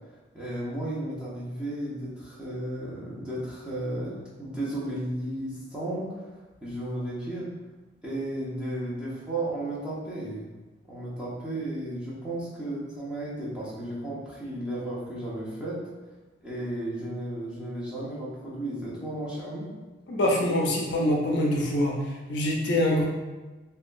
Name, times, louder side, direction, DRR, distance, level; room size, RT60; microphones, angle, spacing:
voice 1, 0.3-6.3 6.6-7.5 8.0-10.4 10.9-15.8 16.4-19.7, right 1 dB, 5° right, -9 dB, 0.6 m, -34 dB
voice 2, 20.1-21.9 22.3-23.1, left 1 dB, 60° left, -1 dB, 0.4 m, -24 dB
2.8 x 2.2 x 2.4 m, 1.2 s
head